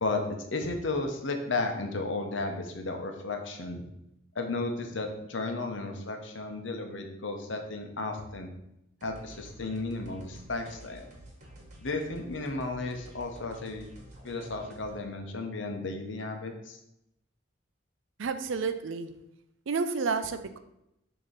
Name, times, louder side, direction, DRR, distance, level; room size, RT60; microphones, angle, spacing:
voice 1, 0.0-3.8 4.3-8.5 9.0-11.1 11.8-13.9 14.2-16.8, left 3 dB, 75° left, 4 dB, 0.9 m, -34 dB
sound 1, 9.0-15.0, right 1 dB, 40° right, 1.2 m, -50 dB
voice 2, 18.2-19.1 19.7-20.6, right 4 dB, 80° right, 10 dB, 0.5 m, -30 dB
6.6 x 3.0 x 5.1 m, 0.82 s
head